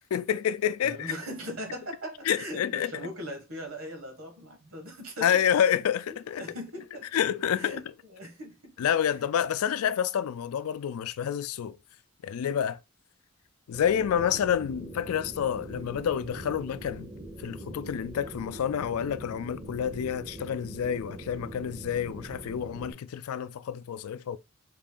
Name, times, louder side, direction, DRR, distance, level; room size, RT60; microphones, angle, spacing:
voice 1, 0.1-1.1 2.3-2.9 5.2-6.4 7.1-7.8 8.8-11.8 12.2-12.8 13.7-17.1 17.4-24.4, left 9 dB, 80° left, 0.3 m, -28 dB
voice 2, 0.8-5.3 6.4-7.1 7.5-8.7, equal, 75° right, 1.2 m, -40 dB
sound 1, 13.7-22.9, right 1 dB, 20° right, 0.5 m, -43 dB
3.8 x 2.5 x 3.7 m
head